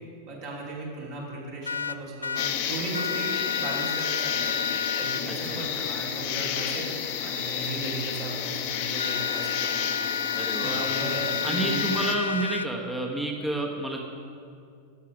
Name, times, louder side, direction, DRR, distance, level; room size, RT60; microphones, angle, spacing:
voice 1, 0.2-6.9 7.2-11.8, right 3 dB, 45° right, -3 dB, 2.8 m, -37 dB
sound 1, 1.6-2.5 2.9-5.2 9.0-12.7, left 6 dB, 75° left, 0.3 m, -31 dB
sound 2, 2.4-12.2, left 8 dB, 50° left, 0.9 m, -31 dB
voice 2, 5.3-5.9 10.3-10.9 11.4-14.0, right 2 dB, 5° right, 1 dB, 1.1 m, -30 dB
11.5 x 7.5 x 5.1 m, 2.4 s
figure-of-eight pair, 90°, 0 cm